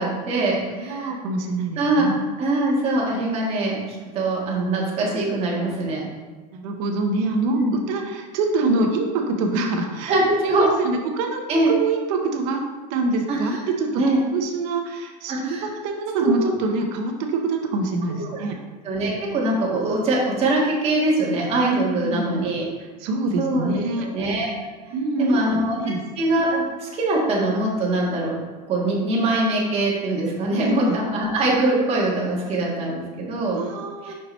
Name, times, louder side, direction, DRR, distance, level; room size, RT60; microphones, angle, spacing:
voice 1, 0.0-1.2 1.8-2.1 2.4-6.0 7.6-7.7 10.1-10.7 11.5-11.7 13.3-13.6 14.0-14.2 15.3-15.7 16.2-16.5 18.2-18.4 18.8-22.7 23.4-24.5 25.2-25.8 26.2-28.3 28.7-33.6 34.0-34.1, right 2 dB, 30° right, -4 dB, 1.6 m, -23 dB
voice 2, 0.8-2.2 6.5-7.6 7.9-10.1 10.6-12.6 12.9-13.9 14.3-18.6 21.7-22.4 23.0-24.1 24.9-26.0 30.6-31.0 33.5-34.1, right 3 dB, 65° right, 3 dB, 1.1 m, -25 dB
6.0 x 5.9 x 3.2 m, 1.3 s
supercardioid pair, 145°, 21 cm